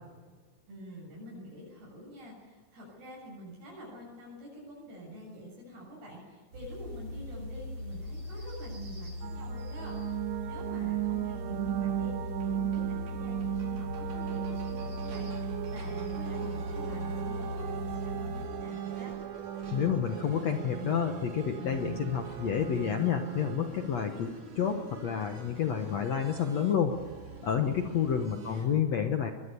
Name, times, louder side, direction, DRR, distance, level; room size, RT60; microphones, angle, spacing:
voice 1, 0.7-19.1 27.7-28.8, equal, 70° right, -3 dB, 9.2 m, -47 dB
sound 1, 6.5-18.5, left 1 dB, 25° right, 7.5 m, -39 dB
sound 2, 9.2-23.7, right 12 dB, 85° right, 3.3 m, -36 dB
sound 3, 12.4-12.5 12.7-12.8 13.1-13.2 13.4-28.6, right 3 dB, 50° right, 5.6 m, -48 dB
voice 2, 19.7-26.9 27.4-29.3, left 8 dB, 65° left, 5 dB, 1.7 m, -29 dB
23.0 x 21.5 x 7.0 m, 1.6 s
omnidirectional pair, 4.9 m